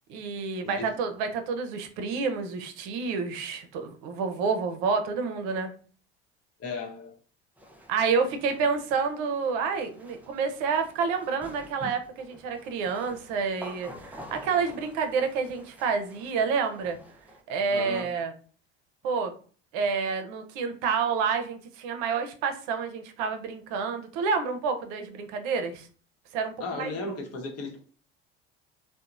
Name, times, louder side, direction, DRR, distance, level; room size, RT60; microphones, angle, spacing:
voice 1, 0.1-5.7 7.9-17.0 17.5-18.3 19.0-19.3 19.7-25.9 26.3-26.9, right 5 dB, 65° right, 6 dB, 0.6 m, -29 dB
voice 2, 6.6-7.2 11.8-11.9 17.7-18.1 26.6-27.8, left 3 dB, 45° left, 2 dB, 0.9 m, -35 dB
sound 1, 7.6-17.4, equal, 5° right, 0.4 m, -49 dB
2.8 x 2.1 x 2.4 m, 0.41 s
hypercardioid pair, 65°, 33 cm